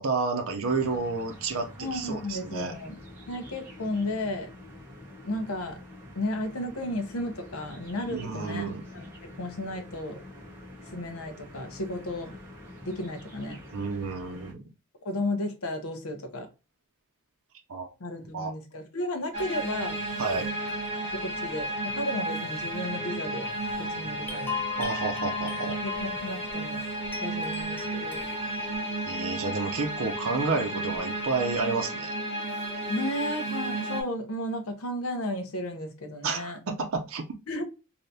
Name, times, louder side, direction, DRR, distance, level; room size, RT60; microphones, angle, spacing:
voice 1, 0.0-2.7 8.1-8.8 13.7-14.6 17.7-17.9 18.3-18.5 20.2-20.5 24.8-25.8 29.1-32.2 36.2-37.4, right 4 dB, 75° right, 0.6 m, -30 dB
sound 1, 0.6-14.5, left 1 dB, 10° right, 0.9 m, -46 dB
voice 2, 1.8-3.0 3.3-4.5 5.2-5.8 6.1-10.2 10.9-12.4 12.8-13.6 15.0-16.5 18.0-20.0 21.1-23.5 23.8-24.6 26.0-26.8 27.2-28.2 32.9-36.6 37.5-37.6, left 1 dB, 85° left, 0.8 m, -33 dB
sound 2, 19.3-34.0, right 1 dB, 50° right, 1.4 m, -33 dB
sound 3, 23.4-31.9, left 6 dB, 10° left, 0.4 m, -40 dB
3.4 x 2.7 x 2.6 m
head